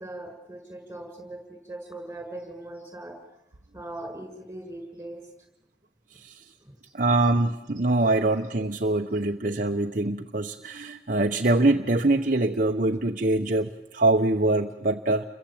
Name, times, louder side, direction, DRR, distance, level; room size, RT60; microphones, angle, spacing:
voice 1, 0.0-3.2 3.7-5.2 6.6-6.7, right 1 dB, 10° right, 5 dB, 6.4 m, -40 dB
voice 2, 6.9-15.3, right 2 dB, 45° right, 4 dB, 1.0 m, -24 dB
29.5 x 23.0 x 8.9 m, 0.87 s
head